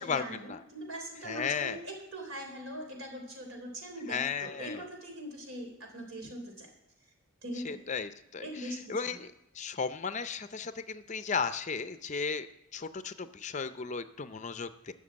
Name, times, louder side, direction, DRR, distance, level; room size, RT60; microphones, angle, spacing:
voice 1, 0.0-6.7 7.4-7.8 8.4-9.2, right 1 dB, 75° right, 2 dB, 3.7 m, -41 dB
voice 2, 1.2-1.8 4.1-4.8 7.6-9.3 9.6-12.5 12.7-14.9, left 5 dB, 35° left, 11 dB, 0.5 m, -35 dB
12.5 x 6.5 x 8.5 m, 0.90 s
head